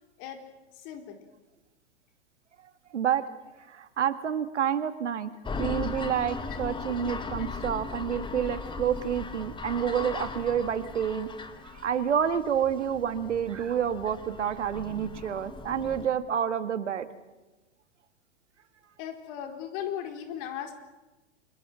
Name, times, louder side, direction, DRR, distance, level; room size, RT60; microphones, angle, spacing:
voice 1, 0.7-1.2 6.9-7.0 19.0-20.7, left 9 dB, 45° left, 6 dB, 4.5 m, -37 dB
voice 2, 2.9-3.2 3.7-5.3 5.6-11.3 11.7-17.1, right 8 dB, 80° right, 11 dB, 1.9 m, -29 dB
sound 1, 5.4-16.1, left 4 dB, 15° left, 2.1 m, -38 dB
29.5 x 23.5 x 6.3 m, 1.1 s
hypercardioid pair, 110°, 35 cm